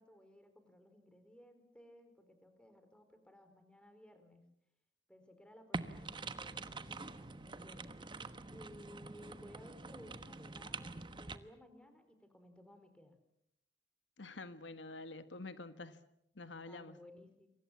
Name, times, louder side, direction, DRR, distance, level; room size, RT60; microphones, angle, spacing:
voice 1, 0.0-4.5 5.1-8.0 8.5-13.1 16.7-17.5, equal, 5° left, 4.1 m, -58 dB
sound 1, 5.7-11.4, right 3 dB, 25° right, 1.1 m, -46 dB
voice 2, 14.2-16.0 16.3-17.0, left 3 dB, 90° left, 1.5 m, -48 dB
28.5 x 24.0 x 7.3 m
head